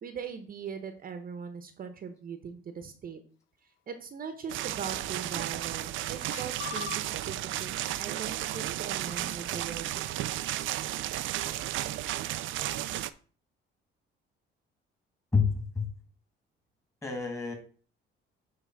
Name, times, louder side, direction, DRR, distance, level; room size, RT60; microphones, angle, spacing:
voice 1, 0.0-3.2 3.9-10.2, right 6 dB, 45° right, 8 dB, 1.0 m, -40 dB
sound 1, 4.5-13.1, right 14 dB, 70° right, 0.5 m, -33 dB
sound 2, 5.0-5.1 5.5-6.0 6.3-7.4 7.8-7.9 8.2-9.6, left 12 dB, 65° left, 0.6 m, -44 dB
voice 2, 15.3-15.9 17.0-17.5, left 5 dB, 15° left, 2 dB, 2.4 m, -28 dB
10.0 x 3.4 x 4.7 m, 0.40 s
cardioid pair, 115°, 21 cm